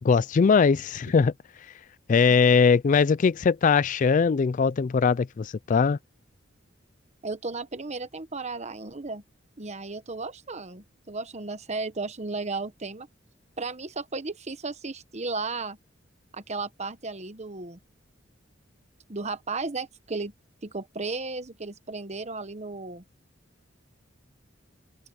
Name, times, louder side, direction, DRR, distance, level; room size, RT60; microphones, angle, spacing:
voice 1, 0.0-1.3 2.1-6.0, left 5 dB, 40° left, 0.3 m, -21 dB
voice 2, 7.2-9.2 9.6-13.1 13.6-15.8 16.3-17.8 19.1-20.3 20.6-23.0, right 3 dB, 35° right, 1.2 m, -34 dB
head